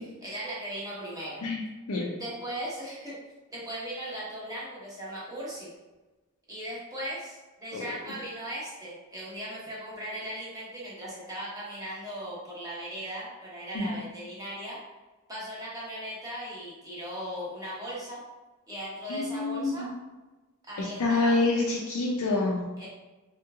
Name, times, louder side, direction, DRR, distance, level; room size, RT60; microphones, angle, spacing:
voice 1, 0.2-1.4 2.1-3.2 3.5-5.7 6.5-14.8 15.3-18.2 18.7-19.9 20.7-21.5 22.8-22.9, right 1 dB, 15° right, -7 dB, 1.0 m, -38 dB
voice 2, 19.1-19.9 20.8-22.6, left 3 dB, 80° left, -3 dB, 0.5 m, -27 dB
3.2 x 3.0 x 2.3 m, 1.1 s
head